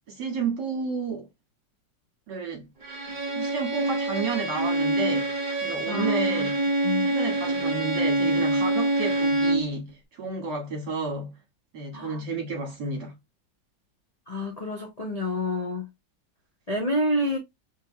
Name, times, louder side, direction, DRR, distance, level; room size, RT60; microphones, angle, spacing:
voice 1, 0.1-1.3 2.3-2.7 3.3-6.6 7.0-11.4 11.7-13.1, right 4 dB, 65° right, 2.6 m, -31 dB
Bowed string instrument, 2.8-9.7, right 2 dB, 35° right, 0.7 m, -26 dB
voice 2, 5.9-6.5 6.8-7.1 11.9-12.2 14.3-15.9 16.7-17.4, left 1 dB, 60° left, 0.4 m, -28 dB
4.9 x 3.2 x 2.3 m
omnidirectional pair, 2.0 m